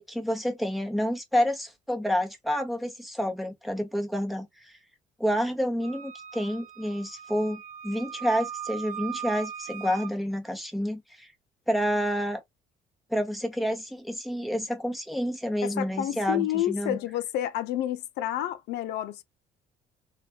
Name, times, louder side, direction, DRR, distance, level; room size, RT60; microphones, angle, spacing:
voice 1, 0.0-4.7 5.2-11.3 11.7-12.4 13.1-17.0, equal, ahead, 0.9 m, -29 dB
Wind instrument woodwind instrument, 5.8-10.1, right 9 dB, 55° right, 0.6 m, -39 dB
voice 2, 15.6-19.2, left 12 dB, 80° left, 0.4 m, -29 dB
3.3 x 2.3 x 2.3 m
cardioid pair, 110°, 17 cm